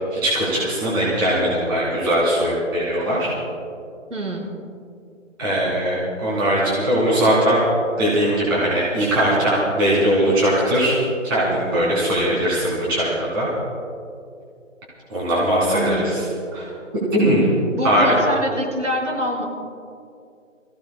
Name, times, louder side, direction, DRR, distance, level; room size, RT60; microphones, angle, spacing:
voice 1, 0.1-3.3 5.4-7.6 8.0-10.9 11.2-13.5 15.1-16.2 16.5-16.7 17.1-17.5 17.8-18.1, right 1 dB, 20° right, -8 dB, 3.3 m, -20 dB
voice 2, 4.1-4.6 15.7-16.2 17.8-19.4, equal, 70° right, -3 dB, 4.6 m, -25 dB
29.0 x 16.5 x 2.2 m, 2.4 s
figure-of-eight pair, 160°, 39 cm